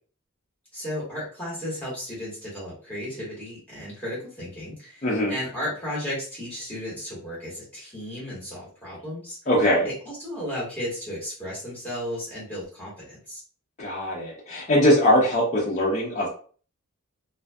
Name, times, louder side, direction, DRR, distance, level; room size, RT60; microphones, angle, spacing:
voice 1, 0.7-9.4 9.8-13.4, left 1 dB, 10° left, -8 dB, 1.2 m, -34 dB
voice 2, 5.0-5.3 9.5-9.9 13.8-16.3, equal, 30° left, -5 dB, 0.5 m, -21 dB
2.5 x 2.4 x 2.2 m, 0.42 s
head